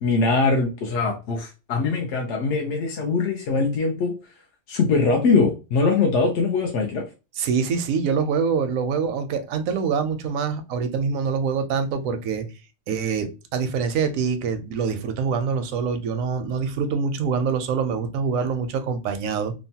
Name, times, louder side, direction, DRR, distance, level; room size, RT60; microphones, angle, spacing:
voice 1, 0.0-4.1 4.7-7.1, left 4 dB, 65° left, 0.8 m, -22 dB
voice 2, 7.4-12.4 12.9-19.5, right 6 dB, 85° right, 1.0 m, -25 dB
3.0 x 2.1 x 2.7 m
omnidirectional pair, 1.4 m